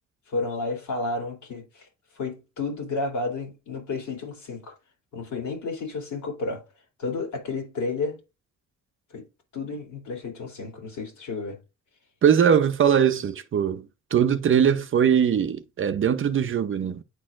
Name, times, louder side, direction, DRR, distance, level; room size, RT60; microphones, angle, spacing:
voice 1, 0.3-1.9 2.2-4.7 5.1-6.6 7.0-8.2 9.1-9.2 9.5-11.6, left 3 dB, 75° left, 2.9 m, -31 dB
voice 2, 12.2-17.0, right 8 dB, 45° right, 0.6 m, -21 dB
9.5 x 4.3 x 2.4 m
cardioid pair, 90°, 30 cm